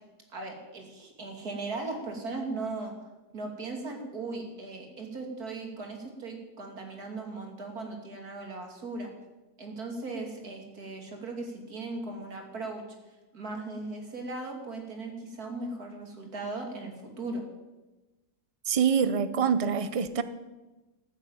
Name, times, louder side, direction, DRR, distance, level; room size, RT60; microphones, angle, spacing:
voice 1, 0.3-2.9 3.3-9.1 9.6-12.8 13.3-17.4, right 3 dB, 65° right, 3.2 m, -38 dB
voice 2, 18.7-20.2, right 7 dB, 35° right, 0.5 m, -25 dB
14.0 x 9.7 x 8.6 m
omnidirectional pair, 1.7 m